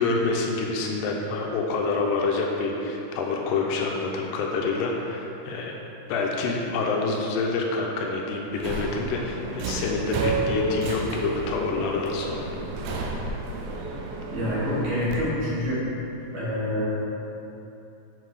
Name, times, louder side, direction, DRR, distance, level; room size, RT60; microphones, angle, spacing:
voice 1, 0.0-5.8 6.1-12.5, left 3 dB, 85° left, 0 dB, 2.7 m, -27 dB
Subway metro underground, 8.5-15.2, right 3 dB, 90° right, 2.8 m, -31 dB
voice 2, 14.3-15.9 16.3-16.9, equal, 55° right, -10 dB, 3.1 m, -26 dB
7.4 x 5.9 x 4.8 m, 2.9 s
omnidirectional pair, 4.9 m